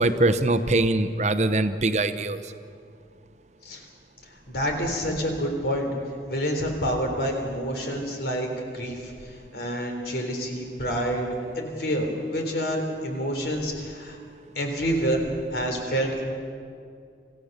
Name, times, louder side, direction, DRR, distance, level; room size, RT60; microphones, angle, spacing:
voice 1, 0.0-2.4, right 2 dB, 40° right, 10 dB, 0.8 m, -22 dB
voice 2, 4.5-5.9 6.3-14.2 14.6-16.2, equal, 65° left, 3 dB, 3.6 m, -28 dB
27.0 x 15.5 x 6.7 m, 2.4 s
head